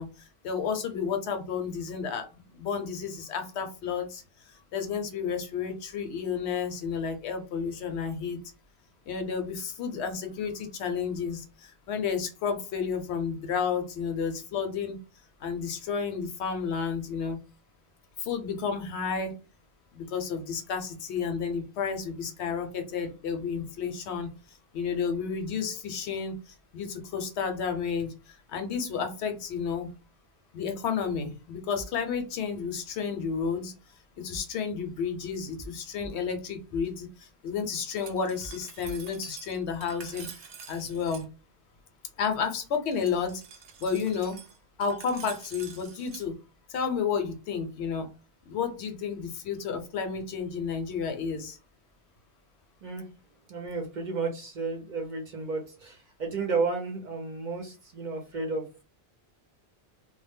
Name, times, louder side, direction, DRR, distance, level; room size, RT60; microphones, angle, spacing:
voice 1, 0.0-8.4 9.1-15.0 15.4-17.4 18.2-19.4 19.9-24.3 24.7-29.9 30.5-33.7 34.2-40.3 40.7-41.3 42.2-43.4 43.8-44.4 44.8-46.4 46.7-48.1 48.5-51.6, left 6 dB, 80° left, 7 dB, 0.9 m, -31 dB
sound 1, 31.8-31.9 32.3-32.4 34.3-34.7 35.6-35.7 36.0-36.1 36.7-36.9 38.4-38.5 38.8-39.2, equal, 35° left, 0.5 m, -44 dB
Glass, 37.9-41.2 42.9-46.2, right 7 dB, 80° right, 0.9 m, -47 dB
voice 2, 53.5-58.8, right 4 dB, 50° right, 2 dB, 0.6 m, -32 dB
2.1 x 2.0 x 3.4 m, 0.30 s
omnidirectional pair, 1.1 m